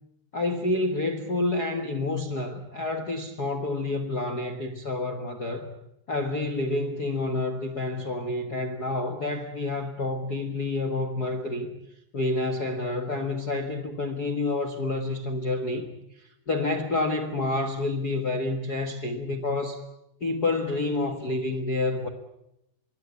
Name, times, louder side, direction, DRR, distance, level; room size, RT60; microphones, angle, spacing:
voice 1, 0.3-5.7 6.1-11.7 12.1-19.8 20.2-22.1, left 2 dB, 80° left, 0.8 m, -29 dB
26.0 x 22.5 x 8.3 m
omnidirectional pair, 4.6 m